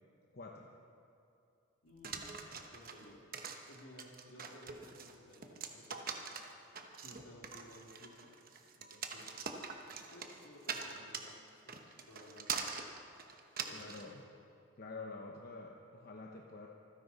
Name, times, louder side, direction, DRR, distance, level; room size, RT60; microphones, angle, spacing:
voice 1, 0.3-0.7 13.7-14.2 14.8-16.7, left 3 dB, 45° left, 0 dB, 0.9 m, -48 dB
voice 2, 1.8-3.2 3.7-6.2 6.9-8.3 8.7-9.4 10.1-12.9 13.6-14.1, left 1 dB, 70° left, -1 dB, 2.6 m, -57 dB
sound 1, 2.0-14.1, right 6 dB, 45° right, 1.0 m, -43 dB
26.0 x 10.0 x 4.1 m, 2.6 s
head